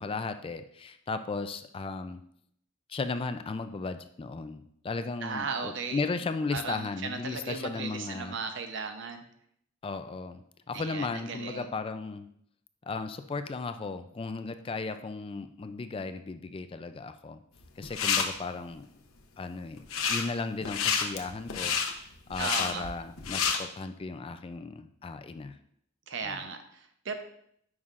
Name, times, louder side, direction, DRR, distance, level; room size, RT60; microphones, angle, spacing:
voice 1, 0.0-2.2 2.9-8.4 9.8-12.3 12.8-17.4 17.8-18.9 19.4-25.6 26.2-26.4, left 4 dB, 25° left, 9 dB, 0.3 m, -36 dB
voice 2, 5.2-6.0 6.5-9.2 10.7-11.7 22.4-22.8 26.1-27.2, right 5 dB, 60° right, 6 dB, 0.8 m, -36 dB
sound 1, 17.6-18.2 19.8-20.3 20.6-23.6, left 6 dB, 90° left, 0.8 m, -29 dB
9.5 x 5.6 x 2.5 m, 0.69 s
head